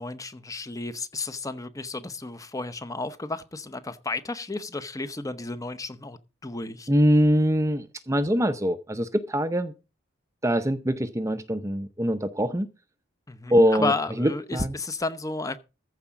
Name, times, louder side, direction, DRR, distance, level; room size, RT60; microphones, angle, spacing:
voice 1, 0.0-6.9 13.3-15.6, left 3 dB, 15° left, 0.8 m, -32 dB
voice 2, 6.9-9.7 10.4-12.7 13.5-13.9 14.2-14.7, equal, 15° right, 0.6 m, -23 dB
14.5 x 4.9 x 7.1 m
head